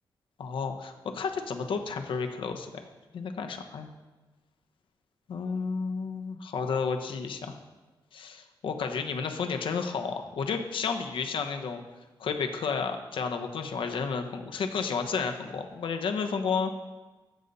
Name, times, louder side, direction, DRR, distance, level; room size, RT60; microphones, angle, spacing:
voice 1, 0.4-2.8 3.1-3.9 5.3-7.6 8.1-11.8 12.2-16.7, left 5 dB, 75° left, 5 dB, 1.1 m, -31 dB
14.5 x 6.8 x 4.1 m, 1.2 s
wide cardioid pair, 150°, 9 cm